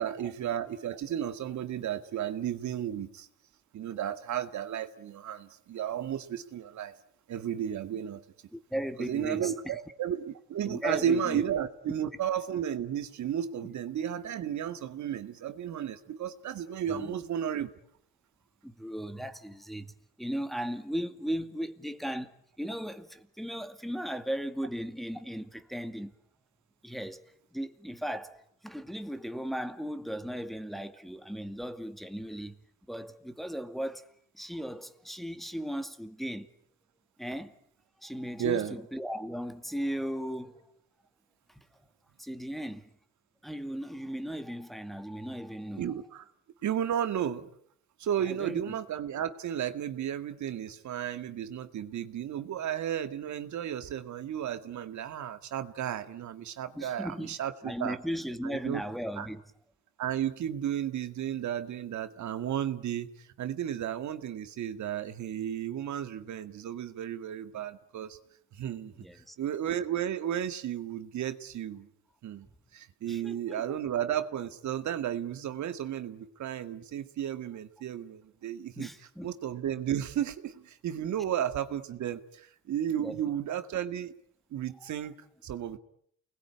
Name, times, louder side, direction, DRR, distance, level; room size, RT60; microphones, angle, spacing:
voice 1, 0.0-3.3 3.7-7.0 7.3-8.2 9.0-17.7 38.4-38.8 45.8-46.2 46.6-47.5 48.0-58.0 58.4-58.8 59.2-59.3 60.0-68.2 68.5-68.9 69.4-71.9 72.2-72.5 72.7-78.9 79.2-84.1 84.5-85.8, right 10 dB, 70° right, 2.1 m, -33 dB
voice 2, 8.5-9.8 10.6-11.4 16.9-17.2 18.6-22.3 22.6-26.1 26.8-28.4 28.6-32.6 32.9-34.1 34.3-36.5 37.2-37.6 38.0-40.6 42.2-42.9 43.4-45.9 48.2-48.6 56.8-57.4 57.6-59.4 69.0-69.4 73.1-73.8 78.8-79.3 83.0-83.2, equal, ahead, 2.3 m, -37 dB
29.0 x 21.0 x 9.9 m
cardioid pair, 90°, 30 cm